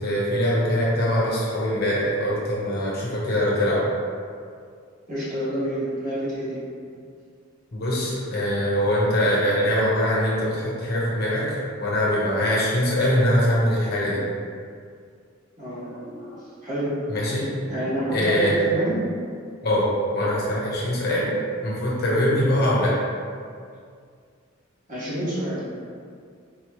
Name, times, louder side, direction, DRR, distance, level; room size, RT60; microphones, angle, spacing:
voice 1, 0.0-3.8 7.7-14.2 17.1-17.5 18.1-18.6 19.6-19.9 20.1-21.4 21.6-22.9, equal, 50° left, -6 dB, 1.0 m, -23 dB
voice 2, 5.1-6.6 15.6-17.0 17.7-19.1 24.9-25.6, equal, 40° right, -10 dB, 1.4 m, -28 dB
4.4 x 3.0 x 3.0 m, 2.2 s
head